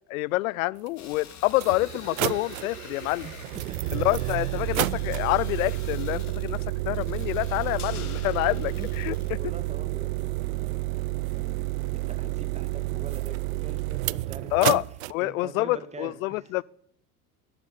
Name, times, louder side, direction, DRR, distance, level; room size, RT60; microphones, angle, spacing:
voice 1, 0.0-3.3 3.9-9.4 14.5-14.8 15.1-16.6, left 20 dB, 65° left, 0.6 m, -27 dB
sound 1, 0.9-1.0 1.5-15.1, right 19 dB, 70° right, 0.6 m, -30 dB
sound 2, 1.0-9.3, left 7 dB, 40° left, 3.7 m, -45 dB
sound 3, 7.8-10.2 10.5-10.6, left 10 dB, 85° left, 1.3 m, -46 dB
voice 2, 9.4-11.0 11.3-11.7 11.9-14.7 15.2-16.6, right 4 dB, 15° right, 1.9 m, -43 dB
13.0 x 11.5 x 9.4 m
hypercardioid pair, 75°, 44 cm